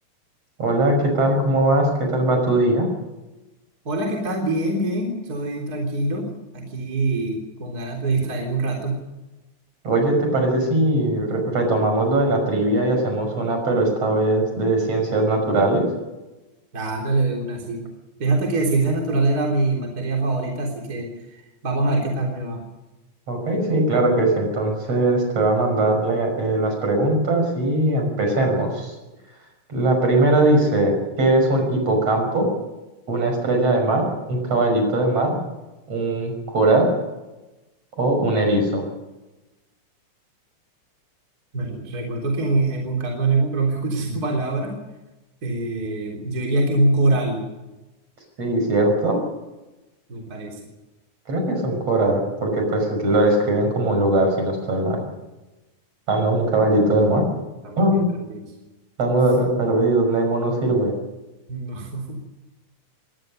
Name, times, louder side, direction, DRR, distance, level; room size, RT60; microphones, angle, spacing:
voice 1, 0.6-2.9 9.8-15.8 23.3-29.0 29.7-32.5 33.1-35.4 35.9-36.9 38.0-38.8 48.4-49.2 51.3-55.0 56.1-57.2 57.8-58.1 59.0-60.9, right 2 dB, 50° right, 4 dB, 6.9 m, -20 dB
voice 2, 3.9-9.0 16.7-17.9 18.2-22.6 41.5-44.8 45.4-47.4 50.1-50.6 56.9-57.3 57.6-58.5 61.5-62.2, right 2 dB, 30° right, 0 dB, 3.8 m, -24 dB
22.5 x 18.5 x 6.6 m, 1.1 s
omnidirectional pair, 3.6 m